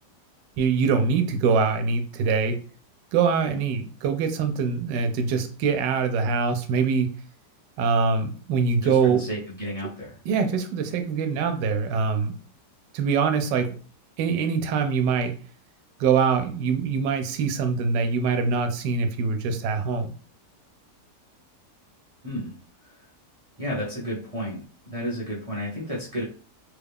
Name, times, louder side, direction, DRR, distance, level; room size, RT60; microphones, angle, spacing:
voice 1, 0.6-2.6 3.1-7.1 7.8-9.2 10.3-12.3 12.9-13.8 14.2-15.4 16.0-20.1, right 5 dB, 90° right, 7 dB, 1.2 m, -23 dB
voice 2, 8.8-10.1 22.2-22.5 22.9-23.0 23.6-26.2, equal, 30° right, -5 dB, 0.7 m, -32 dB
3.3 x 2.3 x 3.5 m, 0.40 s
omnidirectional pair, 1.8 m